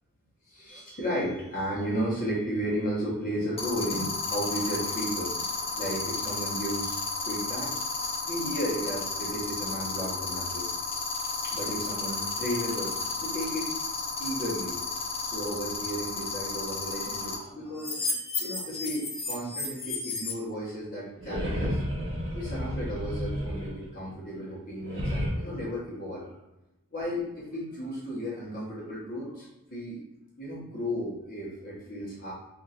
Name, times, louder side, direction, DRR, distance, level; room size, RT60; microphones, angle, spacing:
voice 1, 0.4-7.0 7.2-7.7 8.2-10.7 11.4-13.7 14.2-14.9 15.2-21.8 22.3-26.4 26.9-30.0 30.4-32.3, equal, 40° left, -7 dB, 1.2 m, -34 dB
sound 1, 0.7-1.0 3.6-17.3 17.8-20.3, left 4 dB, 25° left, 0.7 m, -32 dB
sound 2, 21.2-24.1 24.8-25.3, equal, 55° right, 0.8 m, -31 dB
4.2 x 2.8 x 2.5 m, 0.95 s
head